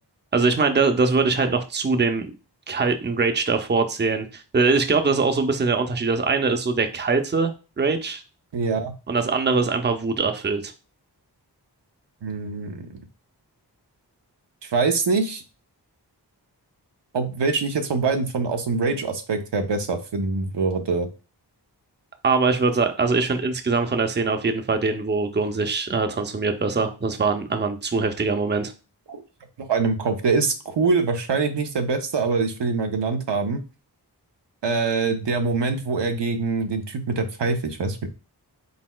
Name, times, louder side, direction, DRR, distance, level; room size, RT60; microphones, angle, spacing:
voice 1, 0.3-2.3 2.7-8.2 9.1-10.7 22.2-28.7, right 4 dB, 25° right, 6 dB, 0.6 m, -22 dB
voice 2, 8.5-8.9 12.2-13.0 14.6-15.4 17.1-21.1 29.1-29.2 29.6-33.6 34.6-38.1, right 4 dB, 80° right, 5 dB, 0.7 m, -24 dB
4.1 x 4.0 x 2.3 m, 0.32 s
wide cardioid pair, 60°, 42 cm